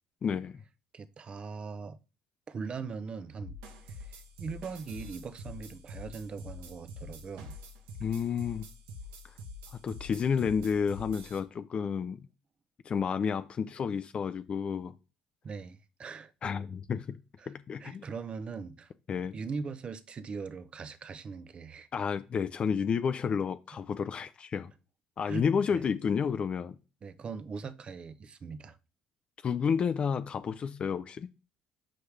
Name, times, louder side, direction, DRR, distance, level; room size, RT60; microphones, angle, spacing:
voice 1, 0.2-0.6 8.0-8.7 9.7-12.2 12.8-14.9 16.4-17.2 17.5-18.0 19.1-19.4 21.9-24.7 25.2-26.8 29.4-31.3, left 6 dB, 45° left, 0.5 m, -31 dB
voice 2, 0.9-2.0 2.5-3.5 3.9-7.6 15.4-16.3 17.4-17.5 17.8-18.9 19.3-21.9 25.3-25.9 27.0-28.8, right 5 dB, 40° right, 0.8 m, -40 dB
sound 1, 3.4-11.4, left 2 dB, 85° right, 1.1 m, -46 dB
6.4 x 5.6 x 3.3 m
supercardioid pair, 70°, 3 cm